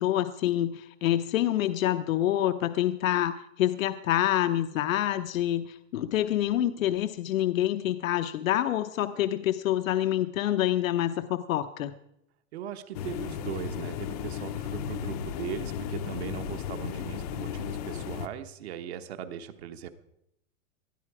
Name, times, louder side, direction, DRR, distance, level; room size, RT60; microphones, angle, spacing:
voice 1, 0.0-11.9, left 12 dB, 80° left, 10 dB, 1.0 m, -27 dB
voice 2, 12.5-19.9, right 9 dB, 50° right, 7 dB, 1.2 m, -39 dB
sound 1, 12.9-18.3, left 8 dB, 30° left, 0.6 m, -35 dB
20.0 x 13.0 x 4.8 m, 0.79 s
supercardioid pair, 180°, 39 cm